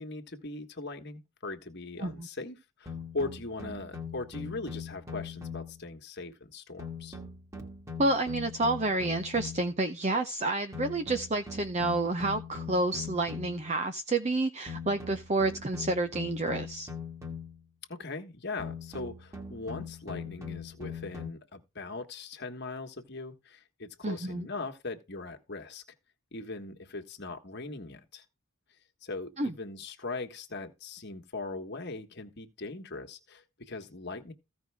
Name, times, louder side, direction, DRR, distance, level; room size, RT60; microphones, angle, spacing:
voice 1, 0.0-7.2 17.9-25.8 26.3-28.2 29.0-34.3, left 3 dB, 50° left, 1.5 m, -40 dB
sound 1, 2.9-5.9 6.8-9.8 10.7-13.7 14.7-17.7 18.6-21.3, left 5 dB, 15° right, 1.5 m, -41 dB
voice 2, 8.0-16.9 24.0-24.5 29.4-29.5, right 2 dB, 30° right, 0.6 m, -29 dB
15.5 x 5.3 x 3.5 m
head